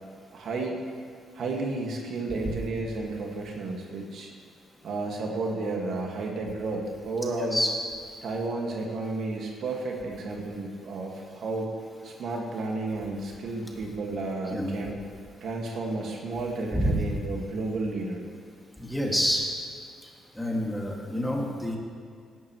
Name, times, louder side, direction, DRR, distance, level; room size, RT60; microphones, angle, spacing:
voice 1, 0.3-0.8 1.3-4.3 4.8-7.6 8.2-11.7 12.0-15.0 15.4-18.3, right 2 dB, 65° right, 0 dB, 1.8 m, -32 dB
voice 2, 18.8-19.5 20.3-21.8, equal, 5° left, -2 dB, 2.1 m, -27 dB
16.5 x 11.0 x 3.1 m, 2.3 s
cardioid pair, 90°, 0 cm